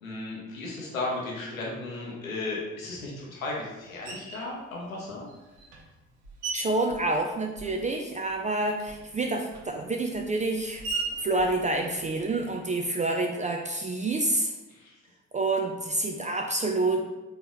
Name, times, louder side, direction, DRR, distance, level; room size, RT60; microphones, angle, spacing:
voice 1, 0.0-5.3 14.7-14.9, left 2 dB, 90° left, -2 dB, 0.7 m, -35 dB
Screech, 4.0-4.5 5.3-8.0 8.3-12.6, right 4 dB, 70° right, 0.9 m, -39 dB
voice 2, 6.5-10.8 11.2-14.5 15.3-17.0, right 2 dB, 20° right, 3 dB, 0.3 m, -28 dB
4.1 x 2.8 x 3.6 m, 1.1 s
figure-of-eight pair, 45°, 40 cm